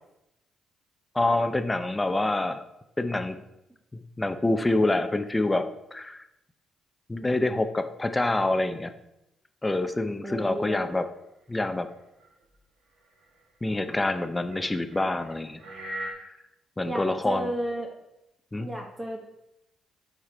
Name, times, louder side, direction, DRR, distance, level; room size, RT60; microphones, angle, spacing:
voice 1, 1.1-2.6 3.0-3.4 3.9-6.2 7.1-8.9 9.6-11.1 11.5-11.9 13.6-15.6 16.2-16.4 16.8-17.5 18.5-18.7, left 2 dB, 15° left, 9 dB, 0.7 m, -26 dB
voice 2, 10.2-10.9 16.8-17.9 18.6-19.3, right 1 dB, 15° right, 0 dB, 1.3 m, -33 dB
sound 1, 10.2-10.3 10.7-10.8 11.6-12.6 13.2-13.4 14.2-16.1, right 1 dB, 75° right, 1.6 m, -40 dB
8.5 x 5.1 x 4.2 m, 0.88 s
cardioid pair, 75°, 0 cm